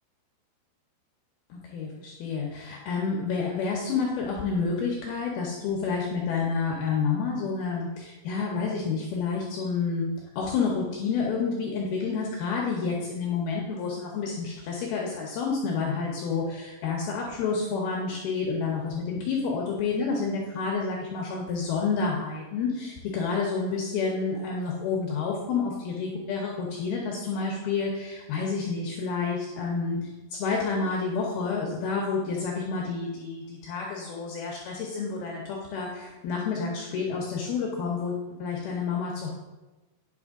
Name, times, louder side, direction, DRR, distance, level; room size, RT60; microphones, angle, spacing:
voice 1, 1.5-10.1 10.4-30.1 30.4-39.3, left 5 dB, 75° left, -1 dB, 2.3 m, -29 dB
9.4 x 6.3 x 3.6 m, 1.1 s
omnidirectional pair, 5.5 m